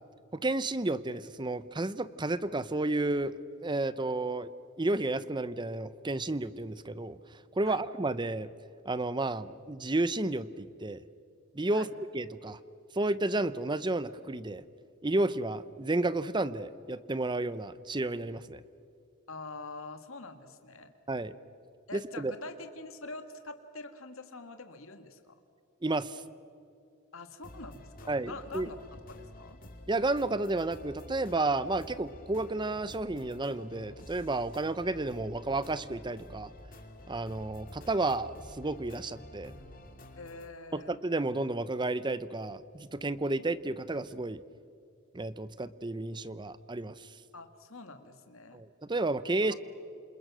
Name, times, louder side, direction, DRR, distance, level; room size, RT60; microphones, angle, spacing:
voice 1, 0.3-3.3 3.6-4.5 4.8-8.5 8.8-11.0 11.5-11.9 12.1-12.6 12.9-14.6 15.0-18.6 21.1-21.3 21.9-22.3 25.8-26.2 28.1-28.7 29.9-36.5 37.1-39.5 40.7-44.4 45.1-47.1 48.5-49.5, right 2 dB, 20° right, 15 dB, 0.7 m, -32 dB
voice 2, 19.3-20.9 21.9-25.4 27.1-28.8 29.1-29.6 40.2-41.0 47.3-48.6 49.5-49.6, left 3 dB, 70° left, 8 dB, 1.9 m, -45 dB
sound 1, 27.4-40.5, left 1 dB, 40° left, 2.7 m, -50 dB
28.0 x 27.5 x 6.2 m, 2.4 s
head